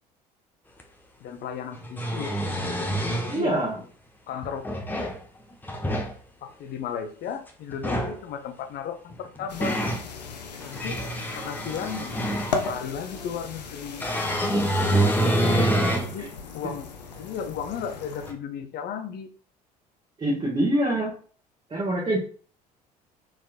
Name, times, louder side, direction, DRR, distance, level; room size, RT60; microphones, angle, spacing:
sound 1, 0.8-0.9 1.7-3.4 4.4-5.2 5.6-6.1 7.7-8.2 9.1-10.0 10.6-12.8 14.0-16.1 16.6-16.7 18.3-18.4, right 1 dB, 10° left, 0.9 m, -26 dB
voice 1, 1.2-2.3 3.2-3.7 4.3-4.9 6.4-9.9 10.6-11.0 11.3-12.3 12.6-14.0 16.0-16.3 16.5-16.9 17.2-19.3, left 7 dB, 50° left, 8 dB, 0.7 m, -35 dB
voice 2, 3.3-3.8 16.2-16.3 20.2-21.1 21.7-22.2, right 1 dB, 25° right, -5 dB, 1.5 m, -25 dB
sound 2, 9.5-18.3, left 4 dB, 85° left, 0.5 m, -37 dB
4.2 x 3.6 x 2.5 m, 0.42 s
hypercardioid pair, 60°, 20 cm